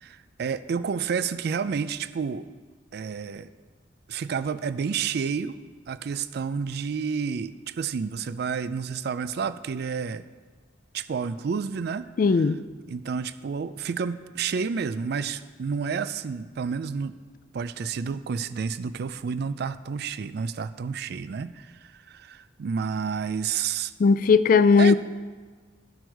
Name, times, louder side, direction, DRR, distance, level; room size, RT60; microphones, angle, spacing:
voice 1, 0.0-2.5 2.9-3.5 4.1-5.6 5.9-10.2 10.9-12.1 12.9-17.1 17.5-23.9 24.8-24.9, right 6 dB, 60° right, 14 dB, 0.4 m, -30 dB
voice 2, 12.2-12.6 24.0-24.9, left 5 dB, 50° left, 14 dB, 0.3 m, -17 dB
13.0 x 6.2 x 4.5 m, 1.4 s
head